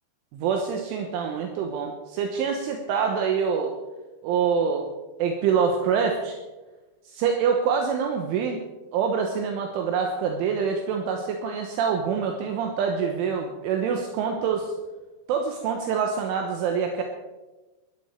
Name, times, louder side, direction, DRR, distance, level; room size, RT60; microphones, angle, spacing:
voice 1, 0.3-3.7 4.2-4.9 5.2-6.4 7.1-8.6 8.9-14.7 15.3-17.0, right 6 dB, 75° right, 3 dB, 3.5 m, -25 dB
19.0 x 13.5 x 4.6 m, 1.2 s
omnidirectional pair, 6.0 m